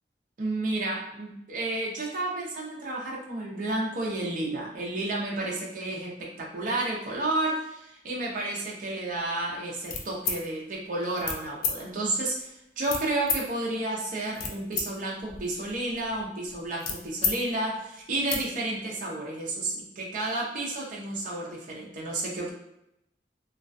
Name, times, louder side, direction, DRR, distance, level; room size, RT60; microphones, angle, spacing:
voice 1, 0.4-22.5, right 2 dB, 50° right, -3 dB, 0.5 m, -31 dB
sound 1, 9.8-10.4 11.2-11.4 11.6-11.7 12.8-13.4 14.1-14.8 15.2-17.4 17.7-17.8 18.1-18.4, left 5 dB, 55° left, 0.4 m, -31 dB
2.3 x 2.2 x 2.5 m, 0.84 s
head